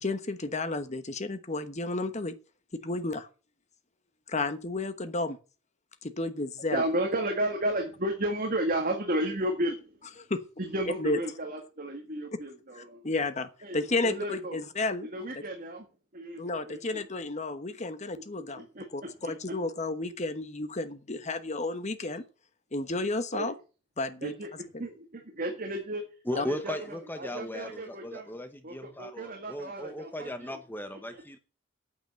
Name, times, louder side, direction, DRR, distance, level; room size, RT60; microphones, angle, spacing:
voice 1, 0.0-2.3 2.7-3.3 4.3-5.4 6.0-6.8 10.3-10.4 11.0-11.2 12.8-15.1 16.4-18.7 18.9-22.2 22.7-23.5 24.0-24.3 26.4-26.5, left 2 dB, 35° left, 1.2 m, -32 dB
voice 2, 6.7-9.9 10.6-13.1 13.6-13.8 14.0-14.6 15.1-15.9 16.1-16.4 16.7-16.8 18.7-18.8 19.2-19.3 23.3-23.5 24.2-24.5 24.8-26.0 26.3-28.3 28.6-30.6, right 1 dB, 45° right, 2.0 m, -33 dB
voice 3, 26.3-31.4, left 1 dB, 10° left, 0.8 m, -37 dB
9.1 x 8.2 x 7.5 m
head